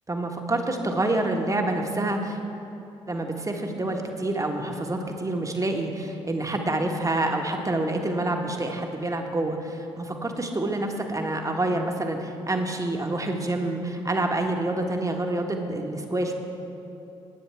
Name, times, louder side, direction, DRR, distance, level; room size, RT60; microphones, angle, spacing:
voice 1, 0.1-2.4 3.1-16.3, right 2 dB, 20° right, 3 dB, 1.5 m, -27 dB
20.0 x 9.4 x 3.5 m, 2.9 s
figure-of-eight pair, 40°, 15 cm